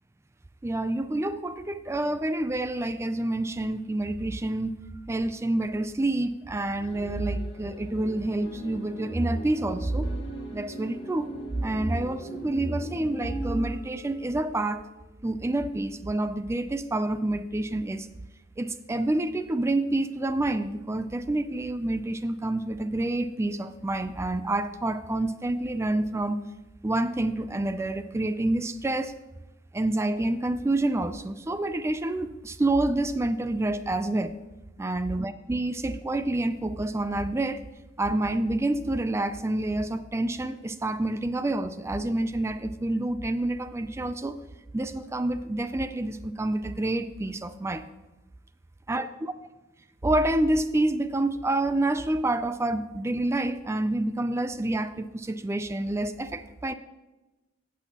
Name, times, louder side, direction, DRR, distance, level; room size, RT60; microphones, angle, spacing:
voice 1, 0.6-4.7 5.1-10.1 10.5-11.3 11.6-14.8 15.2-18.1 18.6-26.4 26.8-29.1 29.7-34.3 34.8-37.6 38.0-44.4 44.7-47.9 48.9-49.3 50.0-56.7, right 2 dB, 15° right, 11 dB, 0.3 m, -28 dB
sound 1, 6.8-15.3, right 1 dB, 75° left, 1.6 m, -41 dB
15.5 x 6.2 x 2.8 m, 1.1 s
head